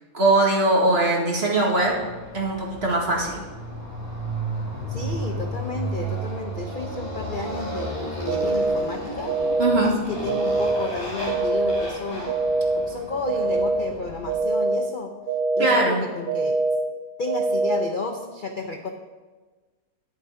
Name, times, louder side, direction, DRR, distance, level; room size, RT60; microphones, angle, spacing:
voice 1, 0.1-1.9 2.3-3.4 9.6-10.0 15.6-16.0, right 2 dB, 40° right, -2 dB, 2.2 m, -21 dB
Motorcycle, 1.8-14.5, right 1 dB, 20° left, 3.3 m, -33 dB
voice 2, 4.9-9.3 9.8-12.4 12.8-15.1 15.6-16.6 17.2-18.9, left 3 dB, 45° left, 3 dB, 0.7 m, -32 dB
sound 1, 8.3-8.8 9.3-9.8 10.3-10.8 11.3-11.8 12.3-12.8 13.3-13.8 14.3-14.8 15.3-15.8 16.3-16.8 17.3-17.8, right 3 dB, 70° right, 1.8 m, -23 dB
11.5 x 7.3 x 5.0 m, 1.3 s
omnidirectional pair, 1.7 m